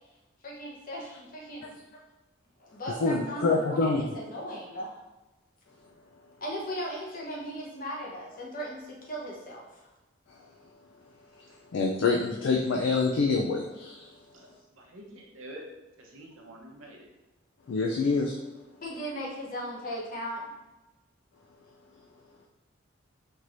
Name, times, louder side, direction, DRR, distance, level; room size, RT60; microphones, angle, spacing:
voice 1, 0.4-2.0 2.6-5.0 6.4-9.9 18.8-20.4, equal, 45° left, -3 dB, 0.9 m, -37 dB
voice 2, 3.0-4.1 10.3-10.4 11.7-14.1 17.7-18.4, left 4 dB, 60° left, 1 dB, 0.3 m, -26 dB
voice 3, 14.7-15.6 16.0-17.1, right 1 dB, 80° right, 0 dB, 0.8 m, -47 dB
4.4 x 3.1 x 2.5 m, 1.1 s
head